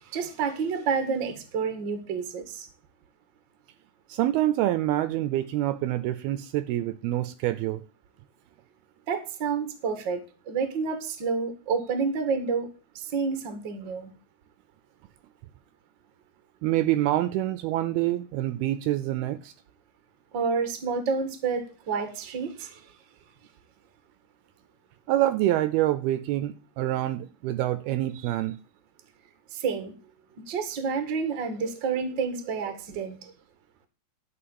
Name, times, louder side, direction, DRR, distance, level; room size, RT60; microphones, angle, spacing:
voice 1, 0.1-2.7 9.1-10.2 10.5-12.7 13.1-14.1 20.3-22.8 29.5-29.9 30.5-33.2, right 5 dB, 50° right, 1.4 m, -29 dB
voice 2, 4.1-7.8 16.6-19.5 25.1-28.6, right 14 dB, 80° right, 2.4 m, -26 dB
11.5 x 5.8 x 7.0 m
omnidirectional pair, 4.8 m